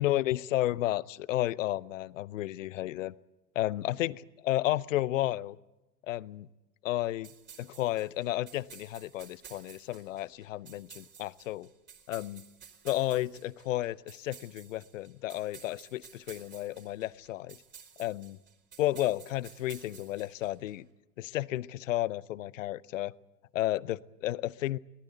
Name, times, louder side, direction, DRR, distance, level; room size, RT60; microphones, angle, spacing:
voice 1, 0.0-3.1 3.5-5.6 6.1-6.5 6.8-7.3 7.6-11.7 12.1-12.4 12.8-17.6 18.0-18.4 18.8-20.9 21.2-23.1 23.5-24.8, left 15 dB, 50° left, 22 dB, 0.8 m, -32 dB
sound 1, 7.2-20.7, right 8 dB, 20° right, 4.2 m, -53 dB
23.0 x 19.0 x 9.3 m, 0.99 s
figure-of-eight pair, 95°, 50 cm